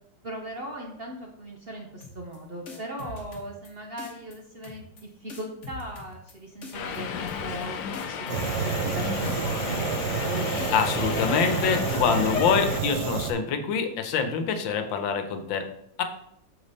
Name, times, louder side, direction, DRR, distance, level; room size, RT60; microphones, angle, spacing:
voice 1, 0.2-10.5, right 1 dB, 45° right, 0 dB, 0.8 m, -39 dB
sound 1, 2.0-2.4 2.7-3.7 4.0-4.4 4.6-5.0 5.3-6.3 6.6-7.0 7.3-7.6 7.9-9.0 9.2-9.6 9.9-10.3 10.6-11.6 11.9-12.3, left 3 dB, 45° left, 1.4 m, -42 dB
Subway metro underground, 6.7-12.8, left 7 dB, 70° left, 1.2 m, -32 dB
Fire, 8.3-13.3, right 6 dB, 75° right, 1.3 m, -29 dB
voice 2, 10.7-15.7 16.0-16.1, left 6 dB, 90° left, 7 dB, 1.6 m, -25 dB
6.9 x 5.2 x 4.0 m, 0.72 s
omnidirectional pair, 2.0 m